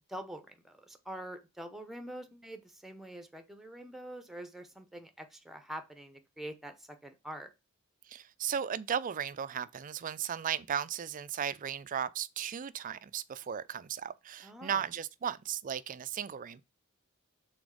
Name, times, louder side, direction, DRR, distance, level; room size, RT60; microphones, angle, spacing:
voice 1, 0.1-7.5 14.4-14.8, right 1 dB, ahead, 0.8 m, -45 dB
voice 2, 8.0-16.6, right 8 dB, 35° right, 0.4 m, -36 dB
6.2 x 3.9 x 4.8 m
head